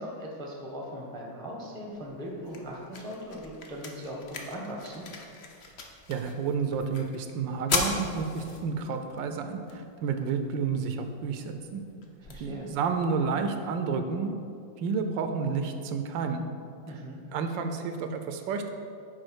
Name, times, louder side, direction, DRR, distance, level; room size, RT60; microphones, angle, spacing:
voice 1, 0.0-5.1 12.2-12.7 16.9-17.2, equal, 5° left, -1 dB, 0.6 m, -39 dB
sound 1, 1.9-13.9, left 4 dB, 65° left, 0.6 m, -39 dB
voice 2, 6.1-11.8 12.4-14.4 14.8-16.5 17.3-18.7, right 5 dB, 80° right, 7 dB, 1.2 m, -30 dB
6.3 x 4.7 x 6.2 m, 2.5 s
omnidirectional pair, 2.1 m